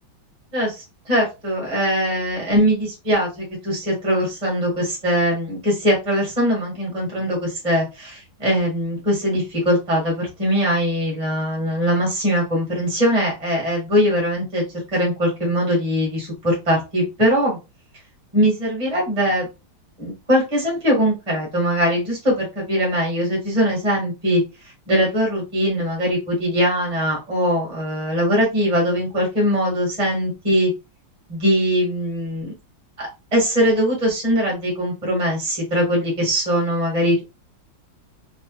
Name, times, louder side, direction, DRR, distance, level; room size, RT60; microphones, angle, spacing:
voice 1, 0.5-14.6 14.9-17.6 18.3-19.5 20.0-24.4 24.9-30.7 31.3-32.5 33.0-37.2, equal, 20° right, -2 dB, 1.9 m, -21 dB
4.1 x 3.4 x 2.4 m, 0.26 s
omnidirectional pair, 2.0 m